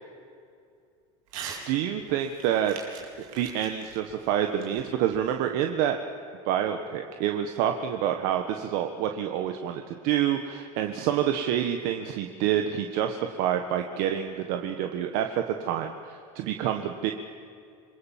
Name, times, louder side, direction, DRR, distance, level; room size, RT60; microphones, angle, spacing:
Crumpling crinkling / Tearing, 1.3-1.7 2.0-5.3, right 7 dB, 90° right, 4.8 m, -42 dB
voice 1, 1.7-2.7 3.3-6.0 6.4-17.1, right 10 dB, 60° right, 5 dB, 1.5 m, -27 dB
27.0 x 22.0 x 7.5 m, 2.4 s
supercardioid pair, 150°, 17 cm